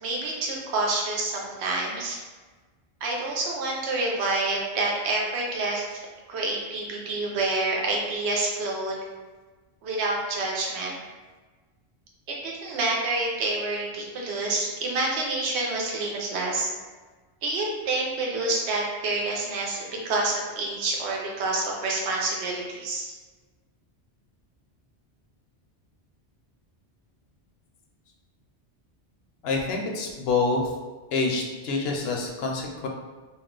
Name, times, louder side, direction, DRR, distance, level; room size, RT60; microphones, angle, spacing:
voice 1, 0.0-2.2 3.0-6.0 6.3-9.0 9.8-11.0 12.3-16.7 17.4-23.1, right 2 dB, 75° right, -2 dB, 0.9 m, -28 dB
voice 2, 29.4-30.7 31.1-32.9, left 3 dB, 70° left, 0 dB, 0.8 m, -27 dB
2.4 x 2.2 x 3.6 m, 1.3 s
omnidirectional pair, 1.1 m